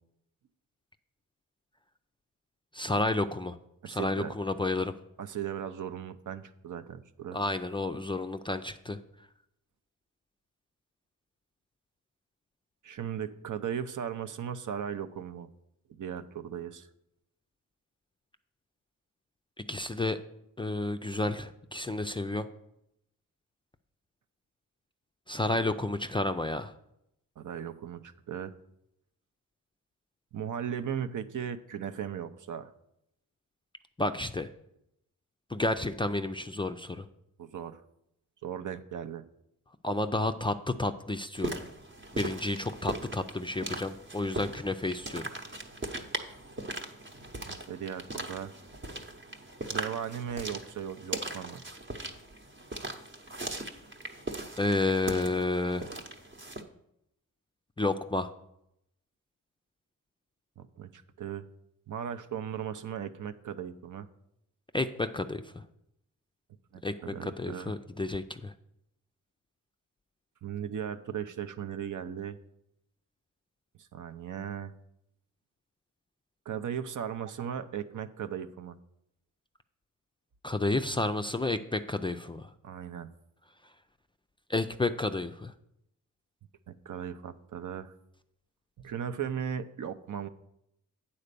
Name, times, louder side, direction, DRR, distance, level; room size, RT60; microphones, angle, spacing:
voice 1, 2.7-3.6 3.9-4.9 7.3-9.0 19.6-20.2 20.6-22.5 25.3-26.7 34.0-34.5 35.5-37.1 39.8-41.6 42.1-45.3 54.6-55.9 57.8-58.3 64.7-65.6 66.8-68.5 80.4-82.5 84.5-85.5, left 2 dB, 15° left, 7 dB, 0.4 m, -31 dB
voice 2, 3.8-4.3 5.2-7.4 12.8-15.5 16.0-16.9 27.4-28.5 30.3-32.7 37.4-37.8 38.4-39.2 47.4-48.5 49.7-51.7 60.6-61.5 61.9-64.1 66.7-67.7 70.4-72.4 73.9-74.7 76.5-78.8 82.6-83.1 86.7-87.9 88.8-90.3, right 8 dB, 60° right, 11 dB, 0.6 m, -37 dB
sound 1, 41.4-56.6, right 2 dB, 35° right, 0.9 m, -39 dB
8.7 x 4.3 x 6.7 m, 0.79 s
cardioid pair, 85°, 34 cm